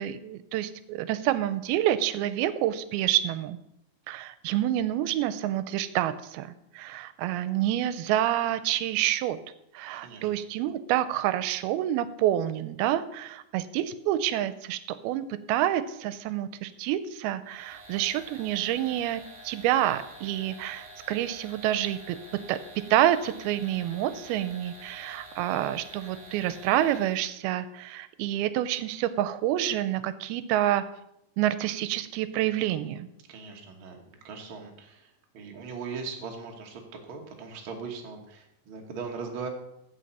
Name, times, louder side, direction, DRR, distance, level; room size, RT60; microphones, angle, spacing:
voice 1, 0.0-3.6 4.1-9.4 9.7-22.2 22.5-30.8 31.4-33.1, right 12 dB, 90° right, 13 dB, 2.5 m, -28 dB
sound 1, 17.4-27.3, right 1 dB, ahead, 2.6 m, -48 dB
voice 2, 33.3-36.8 37.1-39.5, right 5 dB, 55° right, 1 dB, 1.5 m, -39 dB
15.0 x 5.7 x 4.2 m, 0.81 s
omnidirectional pair, 4.3 m